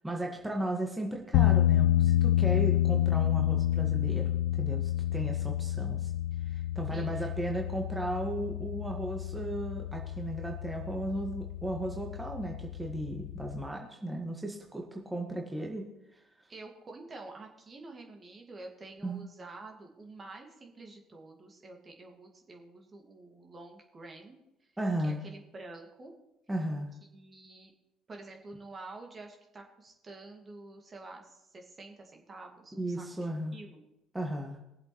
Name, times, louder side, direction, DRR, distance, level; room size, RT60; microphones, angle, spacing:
voice 1, 0.0-4.3 4.6-6.1 6.5-15.8 16.1-16.2 19.0-19.2 24.8-25.2 26.5-26.9 32.7-33.5 34.1-34.6, right 1 dB, 10° right, 1 dB, 1.7 m, -35 dB
sound 1, 1.3-13.7, left 13 dB, 65° left, 0.4 m, -29 dB
voice 2, 6.9-7.3 16.5-24.7 25.0-26.1 27.1-27.7 28.1-33.8, right 2 dB, 35° right, 2 dB, 2.1 m, -48 dB
20.0 x 7.5 x 3.2 m, 0.88 s
hypercardioid pair, 55°, 0 cm